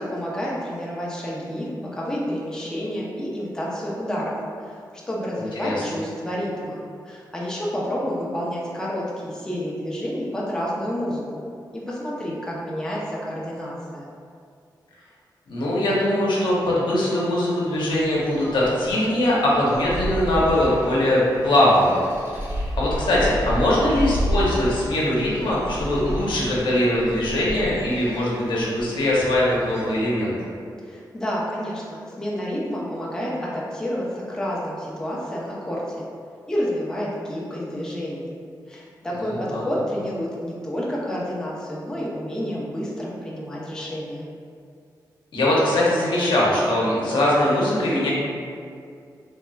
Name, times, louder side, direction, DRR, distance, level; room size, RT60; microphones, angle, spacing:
voice 1, 0.0-6.8 7.0-11.5 11.7-14.1 30.8-36.0 36.5-38.3 38.7-44.3, equal, 10° left, -6 dB, 0.6 m, -29 dB
voice 2, 5.4-5.8 15.5-22.0 22.3-22.4 22.8-30.3 39.2-39.6 45.3-48.1, left 1 dB, 85° left, -6 dB, 0.7 m, -21 dB
sound 1, 17.7-30.0, equal, 30° right, 0.7 m, -32 dB
3.2 x 2.8 x 2.3 m, 2.3 s
cardioid pair, 80°, 8 cm